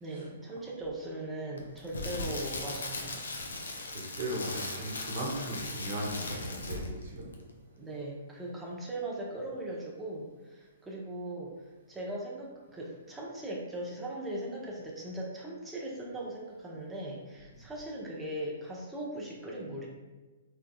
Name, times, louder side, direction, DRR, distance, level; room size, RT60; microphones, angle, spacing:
voice 1, 0.0-3.3 7.8-11.6 11.9-19.9, right 1 dB, 10° right, -4 dB, 0.7 m, -39 dB
Crackle, 1.6-7.1 7.3-7.5, left 2 dB, 75° left, 0.6 m, -38 dB
voice 2, 3.7-7.3, right 1 dB, 50° right, -2 dB, 1.0 m, -37 dB
3.7 x 3.4 x 2.3 m, 1.3 s
figure-of-eight pair, 120°, 0 cm